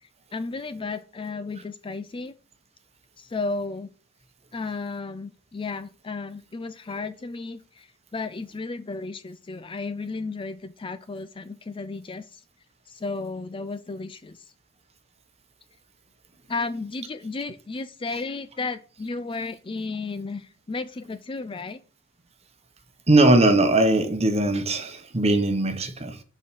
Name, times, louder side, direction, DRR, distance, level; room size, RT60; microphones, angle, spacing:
voice 1, 0.0-2.3 3.2-3.9 4.5-12.4 12.9-14.4 16.5-21.8, left 3 dB, 25° left, 0.4 m, -33 dB
voice 2, 23.1-26.2, right 2 dB, 30° right, 1.0 m, -20 dB
7.0 x 4.6 x 5.6 m
head